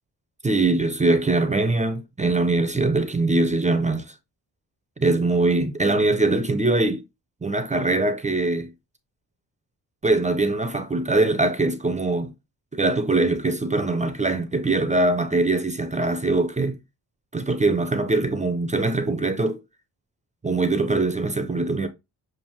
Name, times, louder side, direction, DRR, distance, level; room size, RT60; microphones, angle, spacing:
voice 1, 0.4-4.1 5.0-7.0 7.4-8.7 10.0-12.3 12.7-16.8 17.3-19.6 20.4-21.9, right 2 dB, 20° right, 0.4 m, -22 dB
7.1 x 2.5 x 3.0 m
wide cardioid pair, 135°, 43 cm